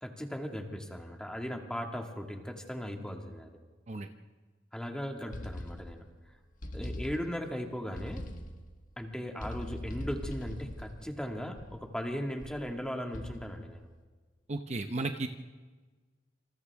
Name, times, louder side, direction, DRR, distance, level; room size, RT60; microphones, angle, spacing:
voice 1, 0.0-3.5 4.7-6.1 6.7-8.3 9.0-13.9, equal, 5° left, 2 dB, 2.0 m, -38 dB
sound 1, 5.3-6.2 6.6-7.6 7.9-8.7 9.4-11.9 12.4-12.7 13.1-13.7, left 1 dB, 45° left, 1.6 m, -42 dB
voice 2, 14.5-15.3, right 2 dB, 40° right, 6 dB, 0.8 m, -34 dB
27.5 x 27.5 x 3.6 m, 1.4 s
head